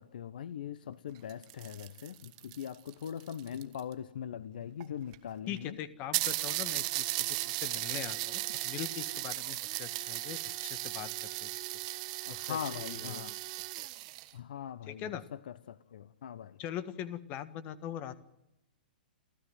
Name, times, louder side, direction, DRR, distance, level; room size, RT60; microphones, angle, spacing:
voice 1, 0.0-5.8 12.3-13.3 14.3-15.0 15.7-16.6, left 9 dB, 65° left, 16 dB, 1.0 m, -41 dB
sound 1, 1.2-3.9 4.8-4.9 5.1-5.2 5.6-5.7 6.1-14.3, right 19 dB, 45° right, 1.5 m, -36 dB
voice 2, 5.5-11.6 12.4-13.4 13.8-13.9 14.9-15.2 16.6-18.2, left 10 dB, 35° left, 14 dB, 1.6 m, -42 dB
28.5 x 14.0 x 7.8 m, 0.89 s
figure-of-eight pair, 110°, 5 cm